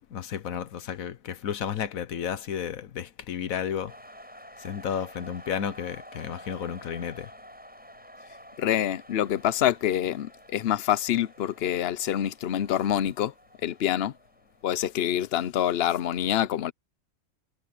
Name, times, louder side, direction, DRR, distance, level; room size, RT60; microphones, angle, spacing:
voice 1, 0.1-3.9 4.6-7.3, left 8 dB, 75° left, 1.4 m, -32 dB
sound 1, 3.9-15.6, equal, 5° right, 6.5 m, -50 dB
voice 2, 8.6-13.3 13.6-14.1 14.6-16.7, left 11 dB, 55° left, 0.9 m, -26 dB
omnidirectional pair, 1.4 m